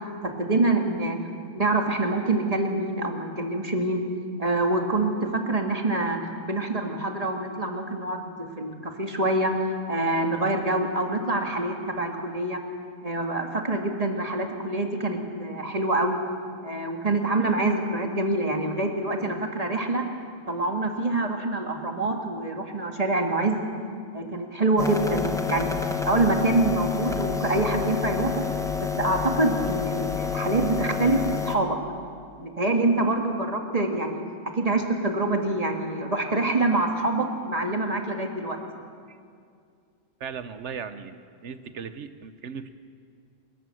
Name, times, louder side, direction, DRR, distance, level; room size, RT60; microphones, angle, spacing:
voice 1, 0.2-1.2 1.5-4.0 4.4-9.5 9.9-12.6 13.0-16.2 16.6-20.1 20.5-23.6 24.1-25.7 26.0-28.5 28.8-31.8 32.4-34.2 34.5-38.6, right 2 dB, 30° right, 3 dB, 1.9 m, -26 dB
sound 1, 24.8-31.6, left 5 dB, 5° left, 0.8 m, -29 dB
voice 2, 40.2-42.7, right 6 dB, 60° right, 11 dB, 1.1 m, -37 dB
28.0 x 12.0 x 7.8 m, 2.3 s
omnidirectional pair, 1.4 m